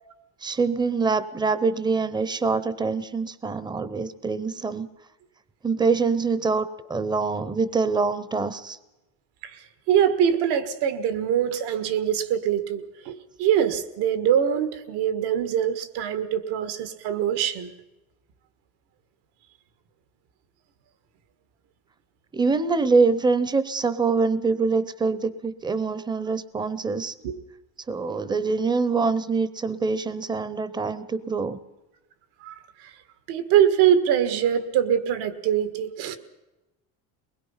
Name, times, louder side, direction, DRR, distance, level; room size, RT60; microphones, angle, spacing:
voice 1, 0.4-4.9 5.6-8.8 22.3-27.1 27.9-31.6, right 4 dB, 10° right, 16 dB, 0.6 m, -24 dB
voice 2, 9.4-17.7 27.2-27.4 32.4-32.5 32.8-32.9 33.3-36.2, right 9 dB, 80° right, 11 dB, 1.7 m, -23 dB
22.0 x 20.5 x 5.7 m, 1.0 s
cardioid pair, 155°, 39 cm